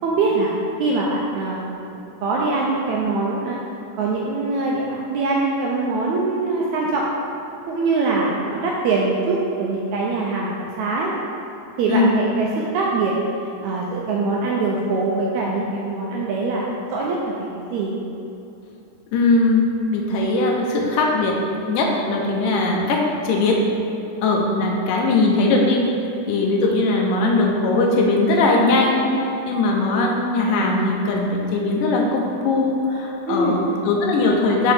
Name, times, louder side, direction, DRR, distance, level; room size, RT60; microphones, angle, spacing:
voice 1, 0.0-1.6 1.9-3.6 4.0-7.0 7.7-11.1 11.8-13.1 13.6-16.7 16.9-18.0 33.3-33.6, right 3 dB, 80° right, -3 dB, 1.7 m, -23 dB
voice 2, 19.1-21.4 21.7-23.6 24.2-25.8 26.3-34.7, left 2 dB, 80° left, 0 dB, 2.4 m, -20 dB
6.4 x 5.7 x 3.4 m, 2.9 s
omnidirectional pair, 3.8 m